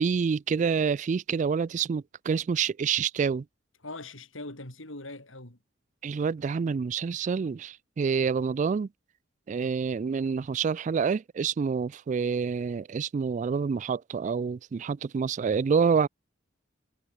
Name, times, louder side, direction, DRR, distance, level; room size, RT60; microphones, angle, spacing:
voice 1, 0.0-3.4 6.0-8.9 9.5-16.1, right 6 dB, 40° right, 0.3 m, -27 dB
voice 2, 3.8-5.6 9.6-9.7, left 2 dB, 75° left, 5.1 m, -41 dB
head